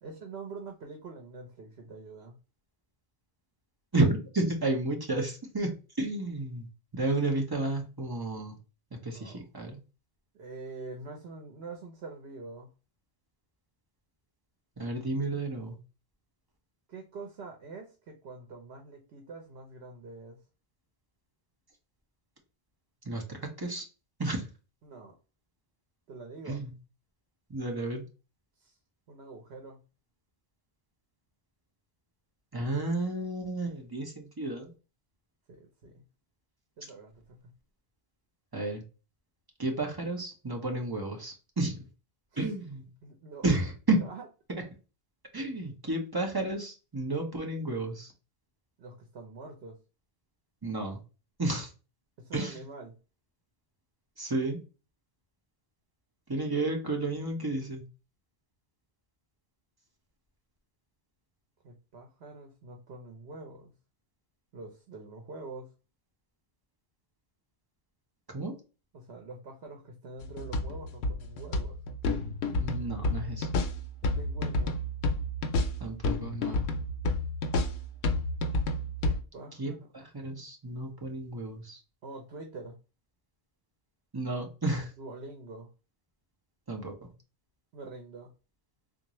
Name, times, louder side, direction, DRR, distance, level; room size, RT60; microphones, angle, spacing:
voice 1, 0.0-2.4 9.1-9.5 10.3-12.7 16.9-20.4 24.8-25.2 26.1-26.6 28.6-28.8 29.1-29.8 35.5-36.0 36.8-37.5 42.4-42.5 43.0-43.5 44.0-44.3 48.8-49.8 52.2-52.9 61.6-63.7 64.5-65.7 68.9-71.8 74.0-74.8 79.1-79.8 82.0-82.8 85.0-85.7 87.7-88.3, right 3 dB, 75° right, 3 dB, 1.0 m, -45 dB
voice 2, 3.9-6.7 6.9-8.5 9.0-9.8 14.8-15.8 23.0-23.9 24.2-24.5 26.5-26.7 27.5-28.0 32.5-34.7 38.5-38.8 39.6-41.8 42.4-42.9 43.4-44.0 45.3-48.1 50.6-51.0 51.4-51.7 52.3-52.6 54.2-54.6 56.3-57.8 68.3-68.5 72.5-73.5 75.8-76.6 79.6-81.8 84.1-84.9 86.7-86.9, right 2 dB, 25° right, 2 dB, 0.8 m, -31 dB
sound 1, 70.2-79.2, left 2 dB, 80° left, 0.9 m, -30 dB
3.6 x 2.5 x 3.0 m, 0.32 s
omnidirectional pair, 1.1 m